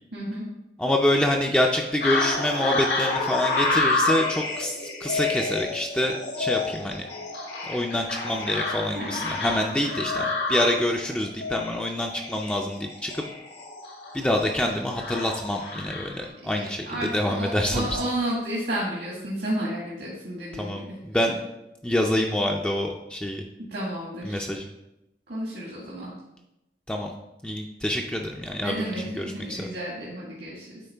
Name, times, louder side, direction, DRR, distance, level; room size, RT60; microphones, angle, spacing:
voice 1, 0.1-0.4 8.9-9.4 16.4-20.9 23.7-24.4 25.3-26.1 28.6-30.7, right 1 dB, 80° right, -5 dB, 1.6 m, -32 dB
voice 2, 0.8-7.1 7.6-13.2 14.1-18.0 20.5-21.3 21.8-23.4 24.2-24.6 26.9-27.1 27.4-29.7, left 1 dB, 5° left, 1 dB, 0.3 m, -26 dB
sound 1, 2.0-16.3, left 3 dB, 75° left, 1.2 m, -29 dB
9.2 x 3.6 x 3.4 m, 0.90 s
head